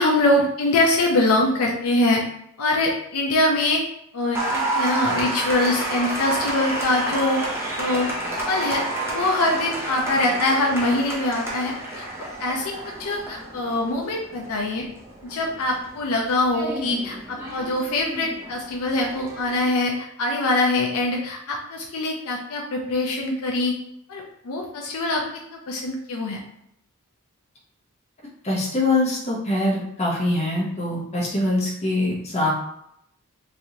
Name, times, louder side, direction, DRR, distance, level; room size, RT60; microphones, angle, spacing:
voice 1, 0.0-2.2 2.6-3.8 4.1-7.4 7.8-8.1 8.4-12.0 12.4-12.7 13.0-14.9 15.2-23.7 24.1-25.2 25.5-26.4, left 2 dB, 70° left, 0 dB, 0.5 m, -23 dB
Applause, 4.3-19.7, right 2 dB, 10° right, 0.6 m, -30 dB
voice 2, 28.4-32.5, left 2 dB, 30° left, -3 dB, 0.8 m, -23 dB
3.0 x 2.5 x 2.7 m, 0.74 s
head